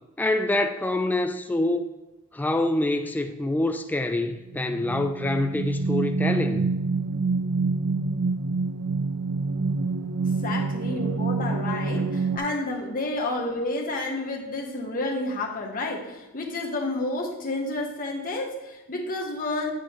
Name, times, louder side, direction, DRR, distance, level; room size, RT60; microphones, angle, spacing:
voice 1, 0.2-1.9 2.3-6.7, left 2 dB, 10° left, 6 dB, 0.3 m, -26 dB
sound 1, 4.1-12.4, right 3 dB, 85° right, 0.5 m, -27 dB
voice 2, 10.4-19.7, left 2 dB, 40° left, 0 dB, 1.2 m, -30 dB
8.4 x 7.7 x 3.1 m, 1.0 s
head